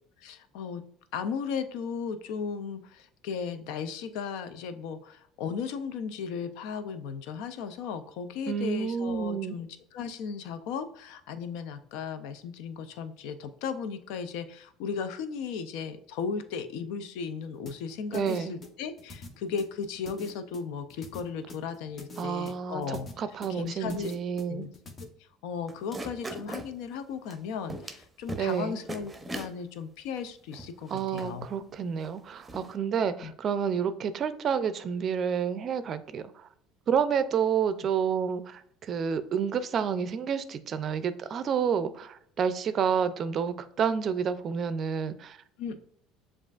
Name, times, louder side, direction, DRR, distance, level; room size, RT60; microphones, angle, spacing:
voice 1, 0.2-0.8 1.1-23.1 23.5-24.1 24.5-24.7 25.4-31.5 33.2-33.3 45.6-45.8, left 6 dB, 70° left, 11 dB, 0.4 m, -36 dB
voice 2, 8.5-9.6 18.1-18.5 22.2-24.7 28.4-28.8 30.9-36.5 36.9-45.4, right 7 dB, 45° right, 12 dB, 0.4 m, -29 dB
sound 1, 17.7-25.0, left 2 dB, 40° left, 0.9 m, -45 dB
sound 2, 25.7-26.7 27.3-27.4 27.7-28.0 28.3-28.6 28.9-29.5 30.2-30.3 30.5-31.3 32.0-32.1 32.4-32.7, right 1 dB, 15° right, 0.7 m, -39 dB
7.0 x 2.4 x 2.4 m, 0.68 s
hypercardioid pair, 80°, 0 cm